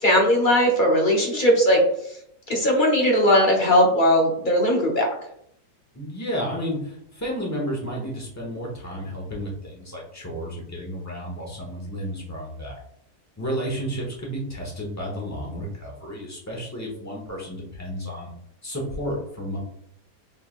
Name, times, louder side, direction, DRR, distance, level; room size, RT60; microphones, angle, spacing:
voice 1, 0.0-1.8 2.5-5.1, equal, 50° left, 0 dB, 0.6 m, -19 dB
voice 2, 5.9-12.8 13.4-18.3 18.6-19.6, equal, 10° left, -2 dB, 0.9 m, -32 dB
5.5 x 3.4 x 2.5 m, 0.72 s
omnidirectional pair, 1.8 m